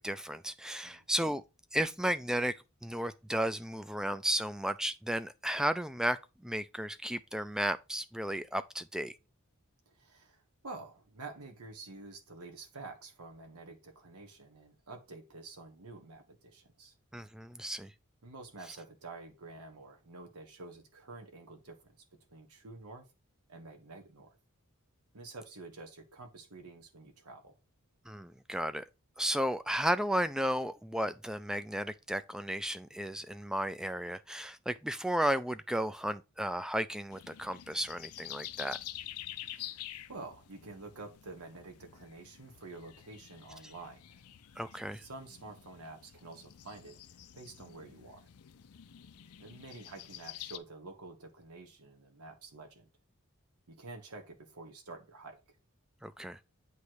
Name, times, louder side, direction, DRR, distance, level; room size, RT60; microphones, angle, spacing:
voice 1, 0.0-1.4 1.7-2.5 2.8-6.2 6.4-9.2 17.1-17.9 28.1-28.8 29.2-38.8 44.6-45.0 56.0-56.4, right 1 dB, 5° right, 0.3 m, -33 dB
voice 2, 9.9-16.9 18.2-21.9 22.3-23.1 23.5-24.4 25.1-27.6 39.3-44.2 44.9-48.2 49.4-52.9 53.7-55.4, right 3 dB, 85° right, 1.2 m, -49 dB
sound 1, 37.1-50.6, left 12 dB, 85° left, 0.5 m, -48 dB
8.2 x 3.1 x 4.7 m
head